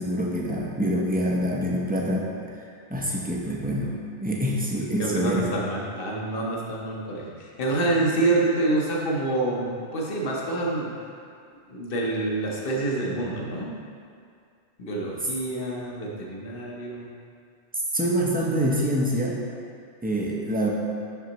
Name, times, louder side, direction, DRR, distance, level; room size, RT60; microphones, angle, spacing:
voice 1, 0.0-2.3 2.9-3.9 4.2-5.5 17.9-19.4 20.0-20.7, equal, 10° right, -3 dB, 0.5 m, -25 dB
voice 2, 5.0-10.9 11.7-13.8 14.8-17.1, right 2 dB, 55° left, -3 dB, 1.1 m, -27 dB
6.2 x 5.8 x 2.9 m, 2.3 s
omnidirectional pair, 1.1 m